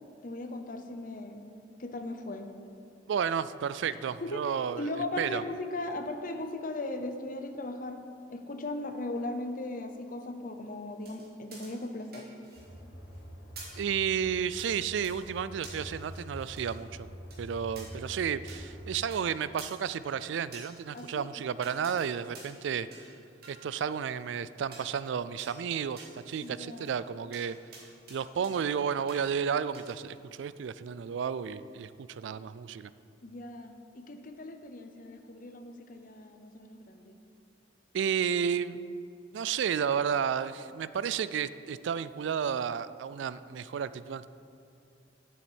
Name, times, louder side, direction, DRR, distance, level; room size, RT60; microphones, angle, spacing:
voice 1, 0.2-1.4 1.8-2.5 3.9-8.0 8.3-12.3 20.9-21.4 26.4-26.9 33.2-37.1, left 2 dB, 45° left, 7 dB, 0.7 m, -38 dB
voice 2, 3.1-4.9 5.2-5.4 13.8-17.1 17.4-22.9 23.5-27.6 28.1-32.9 37.9-38.8 39.3-44.3, right 7 dB, 75° right, 15 dB, 0.3 m, -32 dB
Kitana vs big crobar, 11.0-12.8 13.1-13.2 13.6-13.8 14.6-14.7 15.0-15.2 15.6-16.8 17.3-17.4 17.8-17.9 18.5-18.6 19.1-19.2 19.6-19.7 20.5-21.2 21.6-22.1 22.3-22.6 22.9-23.1 23.4-24.3 24.7-24.9 25.4-25.5 26.0-26.9 27.3-27.4 27.7-28.2 28.4-28.8 29.1-29.3 29.7-30.0, right 3 dB, 55° right, 2.2 m, -50 dB
sound 1, 12.5-19.0, equal, 70° left, 2.8 m, -46 dB
7.3 x 7.1 x 8.0 m, 2.6 s
head